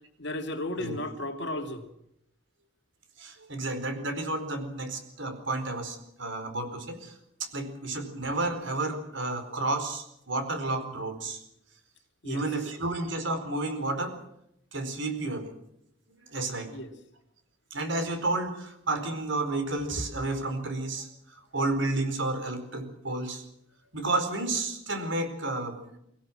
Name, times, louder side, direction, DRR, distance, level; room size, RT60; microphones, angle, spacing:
voice 1, 0.2-1.9 12.2-12.5 16.7-16.9, left 1 dB, 60° left, 5 dB, 2.5 m, -34 dB
voice 2, 3.2-7.1 7.4-11.4 12.2-14.1 14.7-15.5 16.3-16.7 17.7-21.1 21.5-23.4 23.9-26.0, right 2 dB, 65° right, 8 dB, 4.5 m, -31 dB
24.0 x 17.0 x 7.5 m, 0.78 s
head